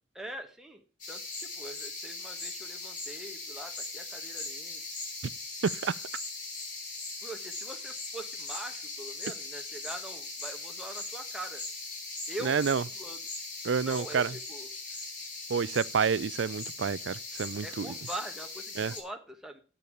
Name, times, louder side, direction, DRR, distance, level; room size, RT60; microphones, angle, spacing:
voice 1, 0.1-4.8 7.2-11.6 12.3-13.2 13.8-14.7 17.6-19.6, right 1 dB, 5° right, 1.3 m, -43 dB
sound 1, 1.0-19.0, left 3 dB, 45° left, 5.0 m, -40 dB
voice 2, 5.6-6.0 12.4-12.8 13.6-14.3 15.5-17.9 18.8-18.9, right 6 dB, 75° right, 0.4 m, -29 dB
8.2 x 6.9 x 8.6 m
head